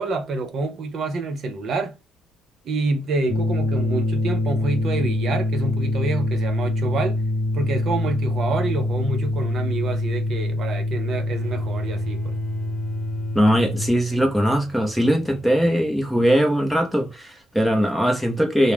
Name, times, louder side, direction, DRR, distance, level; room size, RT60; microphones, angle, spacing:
voice 1, 0.0-2.0 2.7-7.2 7.5-12.4, right 3 dB, 45° right, 0.4 m, -27 dB
sound 1, 3.3-13.9, left 1 dB, 60° left, 0.6 m, -25 dB
Bowed string instrument, 11.4-16.3, right 6 dB, 25° left, 1.0 m, -41 dB
voice 2, 13.3-18.7, equal, ahead, 0.6 m, -20 dB
2.3 x 2.0 x 3.2 m
cardioid pair, 165°, 0 cm